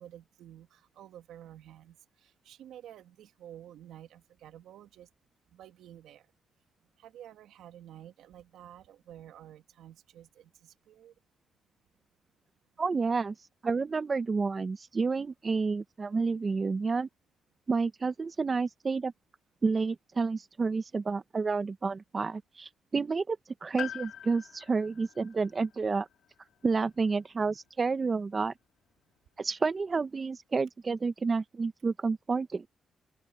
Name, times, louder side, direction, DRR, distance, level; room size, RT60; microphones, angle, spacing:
voice 1, 0.0-2.0 2.2-5.1 5.5-6.2 7.0-11.1, right 11 dB, 90° right, 2.5 m, -51 dB
voice 2, 12.8-13.3 13.6-17.1 17.7-19.1 19.6-26.1 26.6-28.5 29.4-32.6, right 4 dB, 40° right, 1.2 m, -30 dB
Piano, 23.8-27.7 27.9-28.0 29.2-29.3, left 10 dB, 85° left, 2.4 m, -45 dB
open air
cardioid pair, 65°, 0 cm